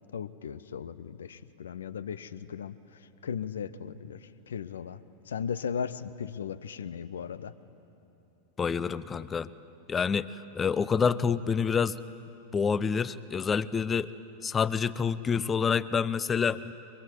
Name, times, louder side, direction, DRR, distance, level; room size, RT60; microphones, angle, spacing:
voice 1, 0.1-2.7 3.2-4.2 4.5-5.0 5.3-7.5, left 7 dB, 65° left, 14 dB, 0.8 m, -36 dB
voice 2, 8.6-9.5 9.9-12.0 12.5-14.1 14.4-16.7, left 6 dB, 20° left, 17 dB, 0.6 m, -27 dB
23.5 x 23.0 x 9.6 m, 2.9 s
figure-of-eight pair, 90°, 0 cm